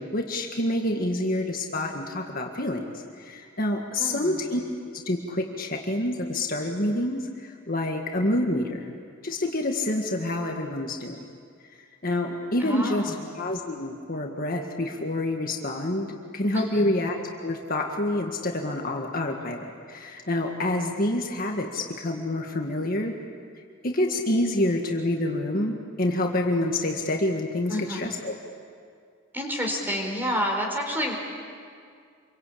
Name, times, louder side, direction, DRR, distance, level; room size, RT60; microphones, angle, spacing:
voice 1, 0.0-4.6 4.9-8.9 9.2-11.2 12.0-16.1 16.3-23.2 23.8-28.4, left 1 dB, 45° left, 2 dB, 1.8 m, -27 dB
voice 2, 4.0-4.4 12.6-13.2 16.5-16.9 27.7-28.0 29.3-31.1, equal, 10° right, 1 dB, 4.5 m, -29 dB
27.0 x 24.0 x 8.6 m, 2.2 s
head